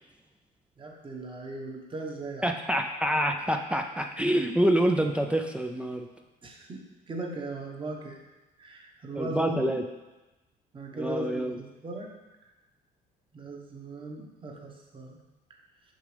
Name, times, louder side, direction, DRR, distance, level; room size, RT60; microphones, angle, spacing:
voice 1, 0.8-2.5 6.4-6.8 7.1-8.2 8.6-9.8 10.7-12.1 13.3-15.2, right 2 dB, 30° right, 0 dB, 1.1 m, -38 dB
voice 2, 2.4-6.1 9.1-9.8 10.9-11.6, right 1 dB, 5° right, 3 dB, 0.4 m, -26 dB
6.6 x 5.1 x 3.3 m, 1.1 s
cardioid pair, 110°, 17 cm